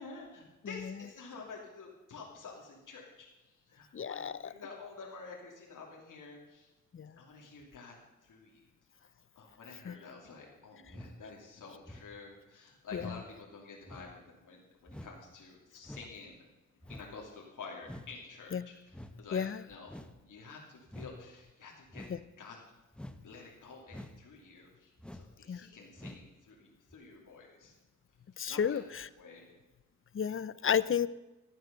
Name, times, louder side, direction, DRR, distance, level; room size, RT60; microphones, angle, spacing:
voice 1, 0.0-3.3 3.7-6.7 7.2-7.9 8.2-8.5 9.4-16.5 16.9-22.0 22.4-22.6 23.2-27.7 28.5-28.8 29.2-29.5, left 4 dB, 75° left, -1 dB, 2.8 m, -49 dB
voice 2, 3.9-4.5 6.9-7.1 9.9-10.0 12.9-13.2 18.5-18.7 19.3-19.6 22.1-22.2 25.5-25.6 28.4-29.1 30.1-31.1, left 7 dB, 40° left, 18 dB, 0.6 m, -32 dB
sound 1, 10.9-11.2 11.8-12.2 12.9-13.2 13.8-14.1 14.9-15.2 15.8-16.2 16.8-17.1 17.8-18.1 18.9-19.2 19.9-20.2 20.9-21.2 21.9-22.2 22.9-23.2 23.9-24.2 25.0-25.3 26.0-26.3 26.9-27.0, left 1 dB, 5° left, 0.9 m, -47 dB
13.0 x 9.6 x 6.8 m, 1.0 s
cardioid pair, 85°, 31 cm